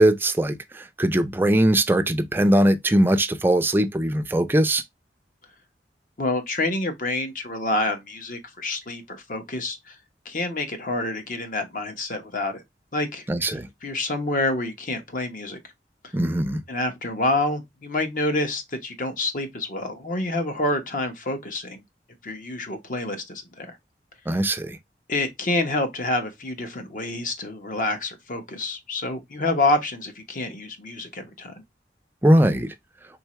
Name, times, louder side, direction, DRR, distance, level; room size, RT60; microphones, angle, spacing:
voice 1, 0.0-4.8 13.3-13.7 16.1-16.6 24.3-24.8 32.2-32.7, right 1 dB, 10° right, 0.4 m, -20 dB
voice 2, 6.2-9.9 10.2-12.6 12.9-13.5 13.8-15.6 16.0-16.1 16.7-21.8 22.2-23.8 25.1-31.5, left 2 dB, 50° left, 1.0 m, -27 dB
4.6 x 3.8 x 3.1 m
head